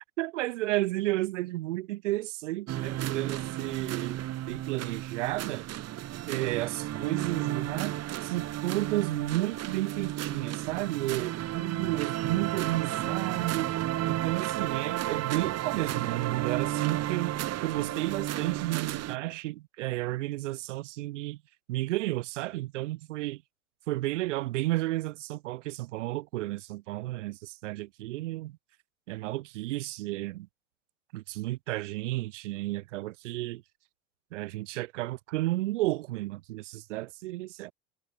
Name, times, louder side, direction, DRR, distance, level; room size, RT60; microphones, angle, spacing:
voice 1, 0.2-4.2 4.5-5.7 6.3-7.9 8.2-13.8 14.0-17.4 17.6-21.4 21.7-23.4 23.9-28.6 29.1-30.5 31.1-33.6 34.3-37.7, right 18 dB, 75° right, 2.0 m, -32 dB
sound 1, 2.7-19.2, right 13 dB, 45° right, 1.7 m, -33 dB
hypercardioid pair, 80°, 36 cm